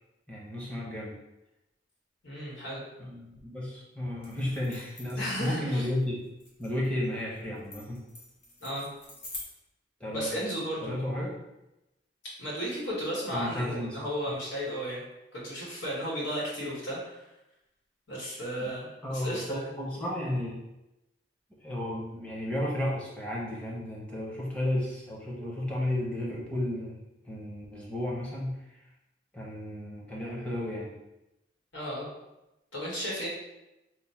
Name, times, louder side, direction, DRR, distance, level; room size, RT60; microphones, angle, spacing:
voice 1, 0.3-1.1 3.0-6.3 6.6-8.1 10.0-10.3 10.8-11.4 13.3-14.0 18.6-18.7 19.0-20.6 21.6-28.6 29.3-31.0, left 1 dB, 5° left, -5 dB, 0.7 m, -33 dB
voice 2, 2.2-2.8 5.2-5.9 8.6-8.9 10.1-10.9 12.4-15.0 15.3-17.2 18.1-19.7 31.7-32.1 32.7-33.3, equal, 85° left, -5 dB, 1.4 m, -34 dB
sound 1, 4.2-9.4, left 2 dB, 65° left, 1.1 m, -46 dB
3.0 x 2.1 x 4.1 m, 0.93 s
head